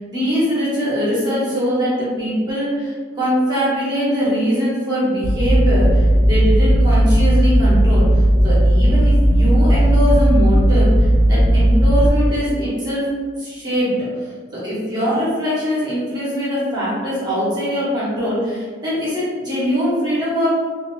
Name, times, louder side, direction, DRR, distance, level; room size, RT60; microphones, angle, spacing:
voice 1, 0.0-8.1 8.4-13.1 13.4-14.0 14.5-20.5, equal, 20° right, -9 dB, 1.0 m, -21 dB
sound 1, 5.2-12.1, right 1 dB, 40° right, 0.4 m, -14 dB
2.7 x 2.5 x 3.1 m, 1.5 s
head